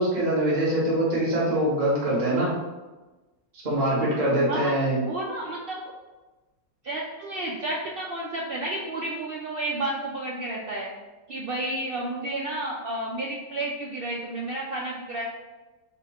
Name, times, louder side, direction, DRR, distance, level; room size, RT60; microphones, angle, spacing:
voice 1, 0.0-2.5 3.6-5.0, right 1 dB, 35° right, -6 dB, 1.1 m, -23 dB
voice 2, 5.0-5.9 6.8-10.9 11.3-15.2, right 1 dB, 75° right, -3 dB, 0.5 m, -31 dB
4.2 x 2.1 x 4.0 m, 1.2 s
omnidirectional pair, 1.5 m